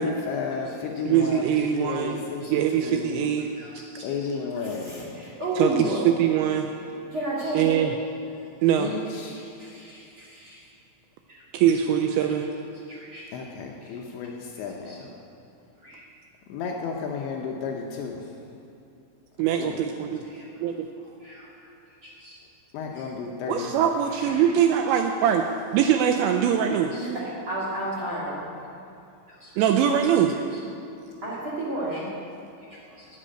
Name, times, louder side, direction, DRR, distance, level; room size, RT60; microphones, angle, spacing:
voice 1, 0.0-1.4 1.7-2.4 2.8-3.2 4.0-5.1 8.8-9.3 13.3-15.0 16.5-18.2 19.6-19.8 22.7-23.7, left 5 dB, 75° left, 0 dB, 2.9 m, -32 dB
voice 2, 1.0-2.2 2.5-3.5 5.6-6.7 7.5-8.0 8.6-8.9 11.5-12.5 19.4-20.2 20.6-20.9 23.5-25.5 25.7-26.9 29.6-30.3, right 9 dB, 90° right, 5 dB, 2.6 m, -22 dB
voice 3, 3.6-4.1 4.6-6.0 7.1-7.8 9.3-10.6 12.9-13.2 14.8-15.0 15.8-16.0 20.3-20.4 21.2-21.4 22.0-22.3 22.9-23.1 23.7-23.8 24.2-24.4 26.9-28.5 29.4-29.5 31.2-32.1, right 1 dB, 50° right, -6 dB, 1.5 m, -32 dB
11.5 x 8.4 x 8.8 m, 2.6 s
omnidirectional pair, 5.7 m